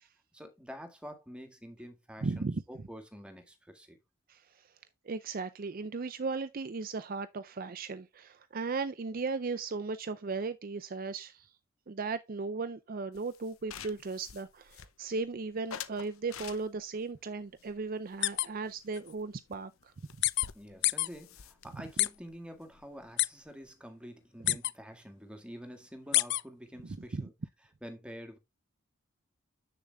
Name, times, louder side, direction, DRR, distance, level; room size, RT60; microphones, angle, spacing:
voice 1, 0.3-4.0 20.5-27.3 27.8-28.4, equal, 5° right, 1.9 m, -47 dB
voice 2, 2.2-2.6 4.3-4.7 5.1-11.5 11.9-19.9 26.8-27.3, right 4 dB, 45° right, 0.5 m, -36 dB
sound 1, 13.1-15.2 15.7-17.0 17.6-18.8 19.1-19.2 19.5-19.6 19.8-23.7, left 8 dB, 80° left, 0.8 m, -49 dB
sound 2, 18.2-18.5 19.0-19.1 20.2-20.5 20.8-21.1 22.0-22.1 23.2-23.3 24.5-24.7 26.1-26.4, left 18 dB, 55° left, 0.4 m, -26 dB
7.7 x 6.8 x 3.4 m
head